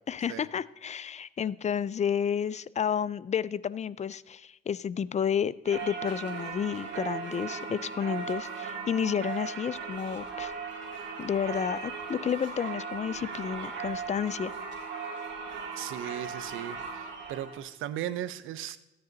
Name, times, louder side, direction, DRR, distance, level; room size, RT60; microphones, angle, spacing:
voice 1, 0.1-10.5 11.2-14.5, left 8 dB, 35° left, 18 dB, 0.4 m, -31 dB
Singing / Church bell, 5.6-17.6, right 5 dB, 65° right, 3.1 m, -38 dB
voice 2, 15.8-18.8, right 11 dB, 85° right, 14 dB, 0.7 m, -37 dB
14.5 x 9.7 x 4.0 m, 1.0 s
cardioid pair, 90°, 20 cm